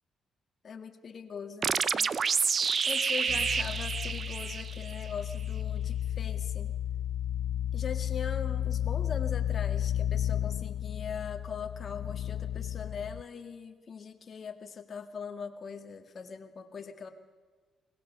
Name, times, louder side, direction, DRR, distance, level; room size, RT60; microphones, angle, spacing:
voice 1, 0.6-2.1 2.9-6.7 7.7-17.1, left 6 dB, 45° left, 7 dB, 1.8 m, -41 dB
sound 1, 1.6-5.1, right 6 dB, 45° right, 0.6 m, -29 dB
sound 2, 3.3-13.2, left 11 dB, 80° left, 0.5 m, -33 dB
21.0 x 18.0 x 6.7 m, 1.5 s
cardioid pair, 90°, 0 cm